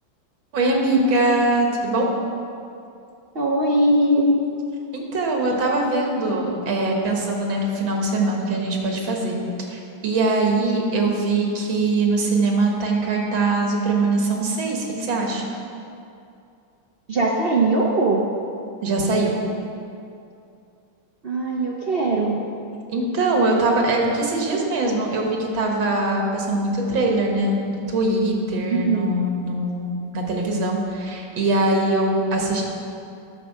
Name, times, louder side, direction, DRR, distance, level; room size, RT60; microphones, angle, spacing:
voice 1, 0.5-2.1 4.9-9.4 9.7-15.4 18.8-19.3 22.9-32.6, right 2 dB, 90° right, 0 dB, 2.2 m, -22 dB
voice 2, 3.3-4.3 17.1-18.2 21.2-22.4 28.7-29.1, right 2 dB, 60° right, -2 dB, 0.6 m, -20 dB
10.0 x 7.0 x 6.1 m, 2.5 s
omnidirectional pair, 2.1 m